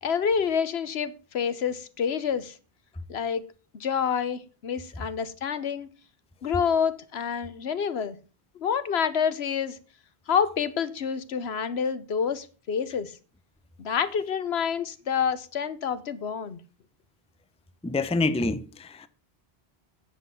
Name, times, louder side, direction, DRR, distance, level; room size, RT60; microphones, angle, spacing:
voice 1, 0.0-2.6 3.1-3.4 3.7-5.9 6.4-8.2 8.6-9.8 10.3-13.2 13.8-16.6, left 7 dB, 75° left, 1.1 m, -28 dB
voice 2, 17.8-19.1, left 3 dB, 10° left, 0.5 m, -27 dB
9.7 x 7.7 x 5.7 m
omnidirectional pair, 1.1 m